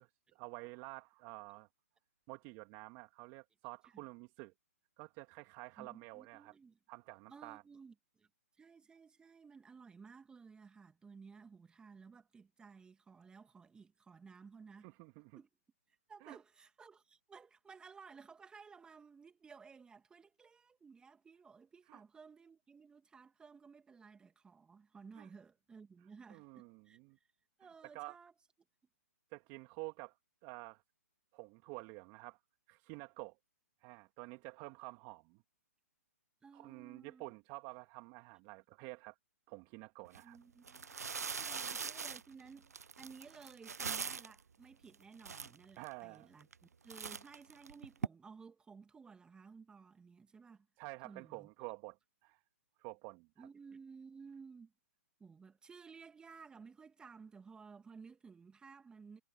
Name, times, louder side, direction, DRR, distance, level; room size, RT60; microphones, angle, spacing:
voice 1, 0.0-1.7 2.3-4.5 5.0-6.5 6.9-7.6 14.8-15.4 16.2-16.4 21.9-22.0 25.2-25.3 26.3-27.2 27.9-28.2 29.3-30.2 30.4-30.8 31.3-32.4 32.7-33.4 33.8-35.4 36.5-39.2 39.5-40.4 41.5-41.7 45.8-46.3 50.8-52.4 52.8-53.5, right 27 dB, 35° right, 2.1 m, -50 dB
voice 2, 5.8-6.8 7.3-8.3 8.6-14.9 15.4-15.5 16.1-27.0 27.6-28.3 36.4-37.2 40.2-40.9 41.2-50.7 51.0-51.5 53.4-54.7 55.2-59.2, right 5 dB, 10° right, 2.6 m, -56 dB
sound 1, 40.1-40.2 40.6-44.4 44.9-45.0 45.2-45.9 46.4-46.6 46.9-48.1, right 6 dB, 85° right, 0.4 m, -41 dB
hypercardioid pair, 130°, 8 cm